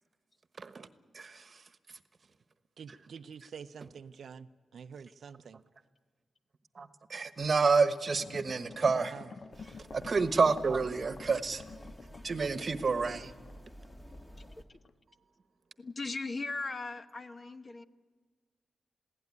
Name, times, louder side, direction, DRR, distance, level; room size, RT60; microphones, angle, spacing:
voice 1, 0.6-0.9 1.1-2.0 6.7-9.2 9.7-11.6 12.2-13.3, right 4 dB, 50° right, 10 dB, 1.2 m, -29 dB
voice 2, 2.8-5.6 9.1-9.3, right 6 dB, 75° right, 11 dB, 0.6 m, -47 dB
sound 1, 8.2-14.5 14.8-14.9, left 5 dB, 55° left, 0.7 m, -49 dB
sound 2, 9.5-14.6, equal, 15° left, 1.6 m, -51 dB
voice 3, 15.8-17.8, left 3 dB, 40° left, 9 dB, 1.1 m, -38 dB
21.5 x 16.5 x 9.7 m, 1.5 s
cardioid pair, 80°, 0 cm